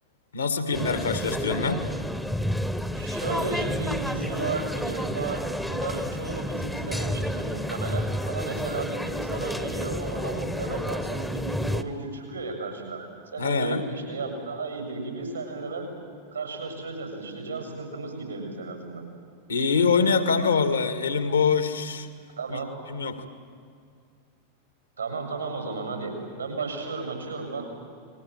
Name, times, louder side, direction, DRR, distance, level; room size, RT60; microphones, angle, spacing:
voice 1, 0.3-1.9 13.4-13.8 19.5-22.1 22.5-22.6 22.9-23.2, left 5 dB, 75° left, 10 dB, 2.0 m, -24 dB
sound 1, 0.7-11.8, equal, ahead, 1.2 m, -30 dB
voice 2, 2.9-13.1 13.3-15.9 16.3-19.0 22.4-22.7 25.0-27.7, right 3 dB, 80° right, 4 dB, 7.1 m, -34 dB
30.0 x 21.5 x 7.9 m, 2.3 s
figure-of-eight pair, 90°, 0 cm